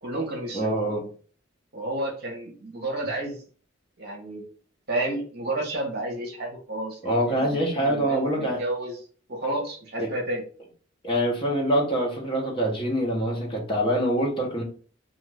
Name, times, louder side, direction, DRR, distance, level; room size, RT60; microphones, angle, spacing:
voice 1, 0.0-1.0 1.7-3.4 4.0-4.4 4.9-9.0 9.3-10.4, right 1 dB, 55° right, 0.9 m, -31 dB
voice 2, 0.5-1.1 7.0-8.6 10.0-10.1 11.0-14.6, equal, 25° left, 0.9 m, -25 dB
2.5 x 2.4 x 3.3 m
head